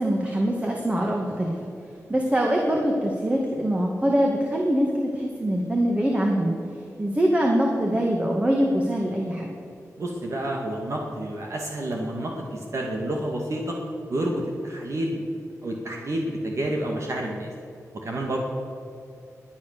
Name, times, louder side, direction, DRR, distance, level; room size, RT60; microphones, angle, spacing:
voice 1, 0.0-1.6 2.1-6.5 7.0-9.5, equal, 20° right, 0 dB, 2.0 m, -23 dB
voice 2, 10.0-13.8 14.1-15.3 15.6-17.5 17.9-18.4, right 1 dB, 55° right, 0 dB, 2.2 m, -29 dB
21.5 x 9.3 x 6.8 m, 2.5 s
wide cardioid pair, 105°, 6 cm